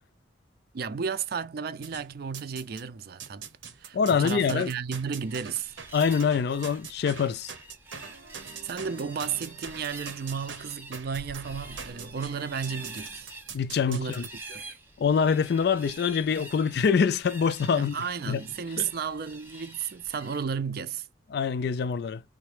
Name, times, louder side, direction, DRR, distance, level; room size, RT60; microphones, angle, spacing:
voice 1, 0.7-3.5 3.8-5.7 8.6-13.3 13.9-14.2 14.5-14.8 17.7-21.1, right 6 dB, 55° right, 0.4 m, -33 dB
sound 1, 1.8-2.8 3.2-14.3, right 6 dB, 85° right, 0.8 m, -43 dB
voice 2, 3.9-4.7 5.9-7.5 13.5-14.2 15.0-18.0 18.3-18.4 18.8-18.9 21.3-22.2, left 6 dB, 60° left, 0.3 m, -25 dB
sound 2, 5.2-20.4, right 2 dB, 10° right, 0.7 m, -47 dB
3.7 x 2.1 x 3.2 m
head